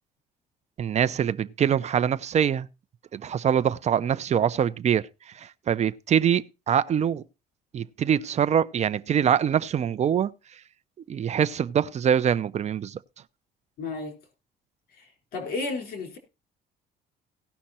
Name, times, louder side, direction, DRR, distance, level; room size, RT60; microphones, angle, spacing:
voice 1, 0.8-2.7 3.1-5.1 5.4-7.2 7.7-10.3 11.1-13.0, right 8 dB, 40° right, 0.7 m, -24 dB
voice 2, 13.8-14.2 15.0-16.2, left 3 dB, 65° left, 4.3 m, -33 dB
17.5 x 5.8 x 4.3 m
cardioid pair, 110°, 17 cm